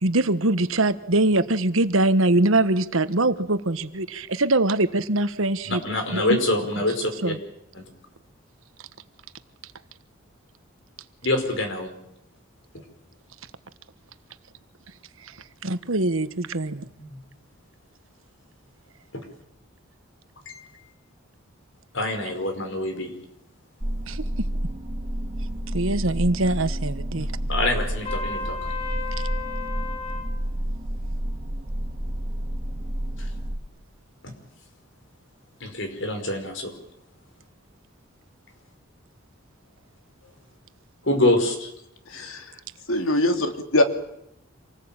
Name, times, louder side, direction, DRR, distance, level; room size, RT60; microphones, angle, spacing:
voice 1, 0.0-5.8 6.1-6.4 7.2-7.4 15.6-16.9 24.1-24.2 25.7-27.3, right 2 dB, 80° right, 12 dB, 1.3 m, -23 dB
voice 2, 5.7-7.3 7.7-7.8 11.2-11.9 17.0-17.2 19.1-19.2 20.4-20.7 21.9-23.1 27.1-28.6 33.2-33.3 34.2-34.3 35.6-36.7 41.0-41.7, left 1 dB, 65° left, 6 dB, 5.0 m, -26 dB
sound 1, 23.8-33.6, equal, 30° right, 2.8 m, -30 dB
Trumpet, 28.0-30.3, left 4 dB, 30° left, 3.0 m, -33 dB
voice 3, 42.1-42.4 42.9-43.8, left 1 dB, 85° left, 6 dB, 2.7 m, -22 dB
27.0 x 19.5 x 8.9 m, 0.78 s
head